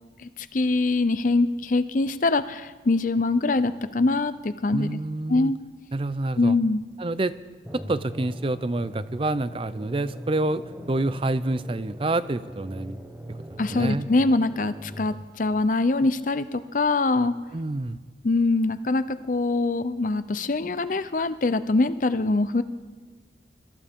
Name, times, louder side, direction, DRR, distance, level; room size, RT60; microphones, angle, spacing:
voice 1, 0.2-5.0 5.3-5.6 6.4-6.8 13.6-17.3 18.2-22.6, left 3 dB, 45° left, 13 dB, 0.6 m, -23 dB
voice 2, 4.7-5.5 5.9-6.6 7.0-7.3 7.7-10.6 10.9-13.0 13.7-14.1 17.5-18.0, right 2 dB, 30° right, 15 dB, 0.5 m, -27 dB
sound 1, 7.6-15.2, equal, 10° right, 1.1 m, -40 dB
24.5 x 14.0 x 3.6 m, 1.5 s
head